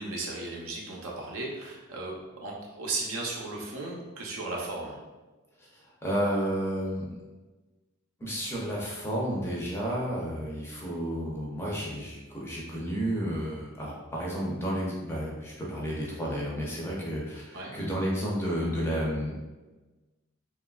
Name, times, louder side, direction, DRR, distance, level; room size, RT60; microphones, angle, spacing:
voice 1, 0.0-5.0 17.5-17.8, right 2 dB, 70° right, -2 dB, 0.6 m, -36 dB
voice 2, 5.7-7.2 8.2-19.4, equal, 10° left, -4 dB, 0.5 m, -31 dB
2.9 x 2.3 x 2.3 m, 1.2 s
head